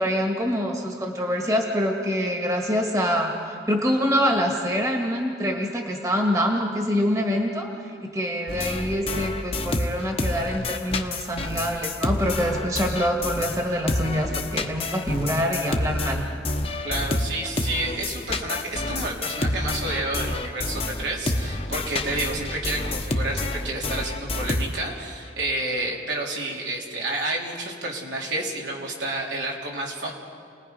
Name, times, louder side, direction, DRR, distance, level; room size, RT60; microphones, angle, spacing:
voice 1, 0.0-16.2, equal, 20° right, 1 dB, 1.6 m, -25 dB
sound 1, 8.5-13.6 13.9-25.0, left 2 dB, 35° left, 1.1 m, -28 dB
voice 2, 16.8-30.1, right 2 dB, 80° right, -2 dB, 3.6 m, -30 dB
29.5 x 20.0 x 5.4 m, 2.4 s
head